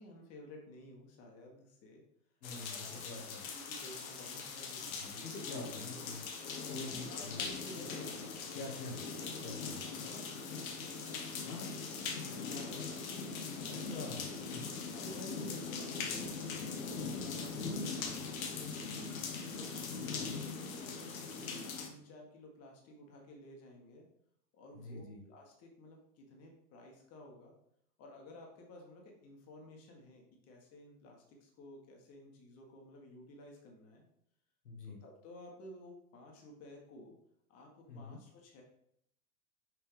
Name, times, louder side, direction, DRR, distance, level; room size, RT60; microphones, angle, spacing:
voice 1, 0.0-2.0 2.8-4.9 6.6-8.7 9.8-10.4 12.3-13.1 14.9-18.9 19.5-19.7 20.1-24.1 24.5-27.5 28.0-34.0 34.8-37.1 37.5-38.6, left 1 dB, 30° left, 0 dB, 1.6 m, -54 dB
voice 2, 2.4-3.5 5.0-6.3 6.7-7.4 8.5-9.0 9.4-9.8 11.4-11.7 13.7-14.6 24.7-25.2 34.6-35.0 37.9-38.2, left 3 dB, 75° left, 1 dB, 1.5 m, -45 dB
sound 1, 2.4-21.9, left 4 dB, 55° left, 1.2 m, -41 dB
6.2 x 4.6 x 3.5 m, 0.73 s
figure-of-eight pair, 105°, 48 cm